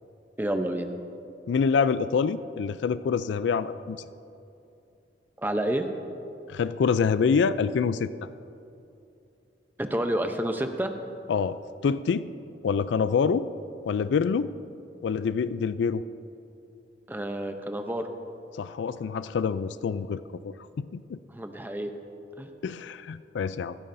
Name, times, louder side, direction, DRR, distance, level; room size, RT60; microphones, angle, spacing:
voice 1, 0.4-0.9 5.4-5.9 9.8-10.9 17.1-18.1 21.3-21.9 22.4-22.5, right 1 dB, 10° right, 6 dB, 0.6 m, -29 dB
voice 2, 1.5-4.0 6.5-8.1 11.3-12.3 12.6-13.5 13.9-14.5 15.0-16.0 18.6-21.2 22.6-23.8, left 6 dB, 80° left, 14 dB, 0.3 m, -26 dB
15.5 x 13.5 x 2.6 m, 2.7 s
head